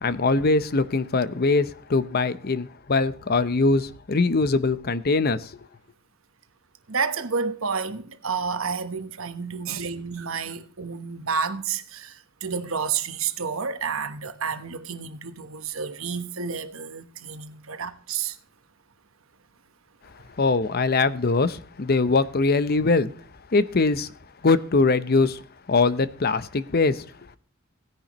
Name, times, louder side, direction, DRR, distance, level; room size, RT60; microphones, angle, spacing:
voice 1, 0.0-5.5 20.3-23.1 23.5-24.1 24.4-25.4 25.7-27.0, left 3 dB, 50° left, 0.7 m, -22 dB
voice 2, 6.9-18.4, right 5 dB, 80° right, 1.1 m, -30 dB
16.5 x 10.0 x 3.0 m
head